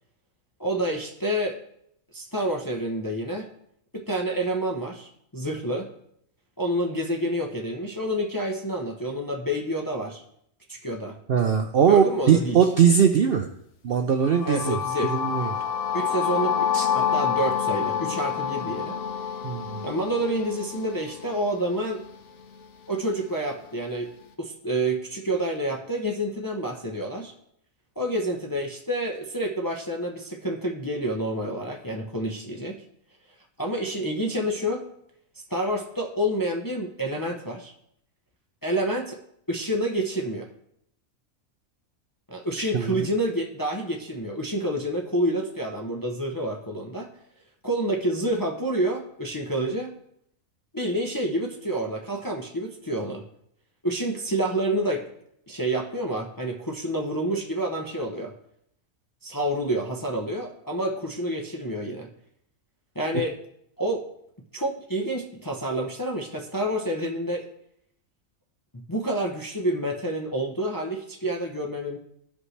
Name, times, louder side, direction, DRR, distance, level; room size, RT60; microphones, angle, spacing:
voice 1, 0.6-1.6 2.1-3.5 3.9-5.9 6.6-10.2 10.7-11.2 11.9-12.6 14.4-15.1 15.9-19.0 19.8-22.0 22.9-24.1 24.4-27.3 28.0-32.8 33.6-34.9 35.5-37.7 38.6-39.2 39.5-40.5 42.3-47.1 47.6-49.9 50.7-53.2 53.8-55.0 55.5-58.3 59.2-62.1 63.0-63.4 63.8-64.0 64.5-67.5 68.7-72.0, right 1 dB, 20° left, 1 dB, 0.5 m, -28 dB
voice 2, 11.3-13.5 13.8-14.8 15.1-15.5 16.7-16.9 19.4-19.8 42.6-43.1, right 7 dB, 60° right, 6 dB, 0.6 m, -21 dB
sound 1, 14.2-22.1, left 8 dB, 60° left, 1.1 m, -28 dB
15.5 x 5.2 x 3.2 m, 0.72 s
omnidirectional pair, 1.5 m